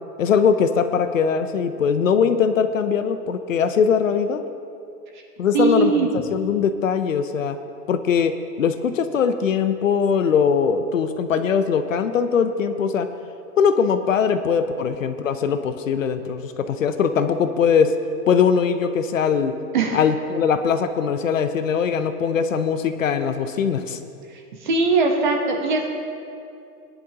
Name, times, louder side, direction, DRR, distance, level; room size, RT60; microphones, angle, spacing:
voice 1, 0.2-4.4 5.4-7.6 7.9-13.1 13.6-18.0 18.3-19.6 19.9-24.0, left 6 dB, 55° left, 10 dB, 0.7 m, -21 dB
voice 2, 5.5-6.1 19.7-20.0 24.3-25.9, right 4 dB, 30° right, 2 dB, 1.0 m, -21 dB
19.5 x 10.5 x 2.9 m, 2.5 s
hypercardioid pair, 175°, 48 cm